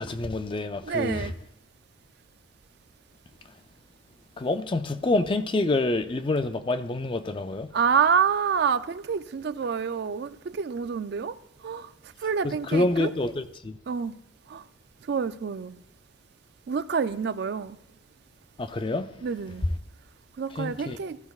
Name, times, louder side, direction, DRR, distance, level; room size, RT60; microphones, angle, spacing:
voice 1, 0.0-1.3 4.4-7.7 12.7-13.7 18.6-19.1 20.6-21.0, left 2 dB, 25° left, 0.4 m, -27 dB
voice 2, 0.8-1.3 7.7-11.4 11.6-11.9 12.2-13.1 13.9-14.1 14.5-14.6 15.1-15.8 16.7-17.8 19.2-19.7 20.4-21.2, right 6 dB, 55° right, 0.4 m, -27 dB
14.0 x 12.0 x 2.4 m
head